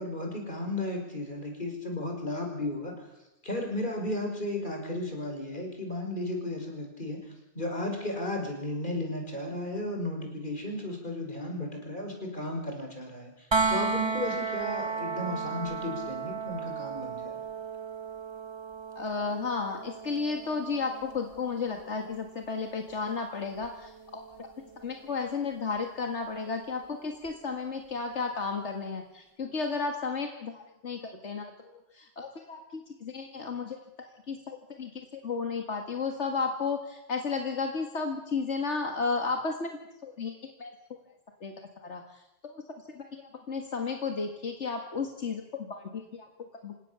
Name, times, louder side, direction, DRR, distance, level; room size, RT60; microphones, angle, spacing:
voice 1, 0.0-3.0 3.4-7.2 7.6-13.3 13.7-17.4, left 1 dB, 45° left, 2 dB, 5.5 m, -34 dB
sound 1, 13.5-25.3 27.3-27.4, right 4 dB, 25° right, 1.0 m, -35 dB
voice 2, 19.0-24.5 24.8-31.5 31.9-33.8 34.3-40.7 41.4-41.5 41.8-42.0 42.5-42.6 43.0-46.3 46.6-46.7, left 4 dB, 80° left, 4 dB, 2.2 m, -33 dB
28.0 x 17.0 x 6.9 m, 0.90 s
omnidirectional pair, 1.2 m